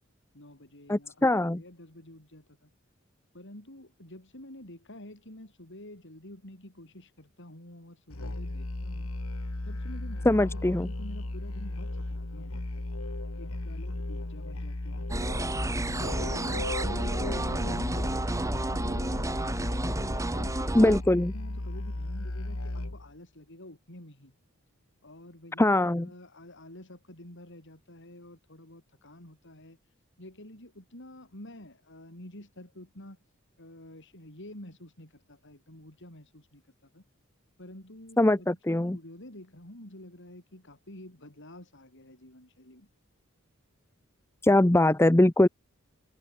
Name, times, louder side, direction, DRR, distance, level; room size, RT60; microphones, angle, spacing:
voice 1, 0.3-2.7 3.3-9.1 9.6-12.9 13.4-15.1 15.5-19.3 19.7-24.4 25.0-29.8 30.2-33.2 33.6-37.0 37.6-42.9, left 1 dB, 60° left, 7.2 m, -49 dB
voice 2, 0.9-1.6 10.3-10.9 20.7-21.3 25.6-26.1 38.2-39.0 44.4-45.5, left 1 dB, 10° left, 0.7 m, -22 dB
Musical instrument, 8.1-23.1, left 1 dB, 80° left, 1.8 m, -35 dB
sound 1, 15.1-21.0, right 1 dB, 15° right, 1.4 m, -31 dB
head